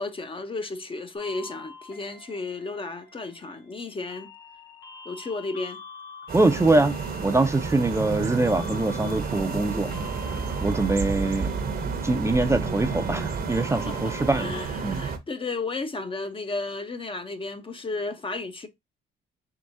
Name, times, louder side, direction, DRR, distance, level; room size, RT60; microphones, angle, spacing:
voice 1, 0.0-4.3 5.0-5.8 13.9-18.7, left 3 dB, 25° left, 0.7 m, -33 dB
sound 1, 1.1-14.6, left 4 dB, 75° left, 2.2 m, -46 dB
voice 2, 6.3-6.9 7.2-9.9 10.6-11.5 12.0-14.5 14.8-15.0, right 2 dB, 15° right, 0.6 m, -23 dB
sound 2, 6.3-15.2, right 5 dB, 50° right, 0.9 m, -31 dB
4.8 x 3.5 x 2.6 m
cardioid pair, 90°, 20 cm